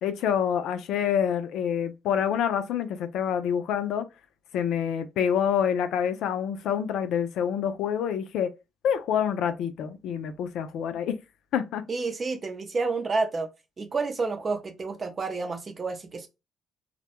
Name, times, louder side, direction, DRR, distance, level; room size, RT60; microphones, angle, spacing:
voice 1, 0.0-4.1 4.5-8.5 8.8-11.2 11.5-11.9, left 8 dB, 70° left, 0.4 m, -27 dB
voice 2, 11.9-13.5 13.8-16.3, right 3 dB, 40° right, 0.6 m, -29 dB
2.1 x 2.1 x 2.9 m
hypercardioid pair, 55°, 0 cm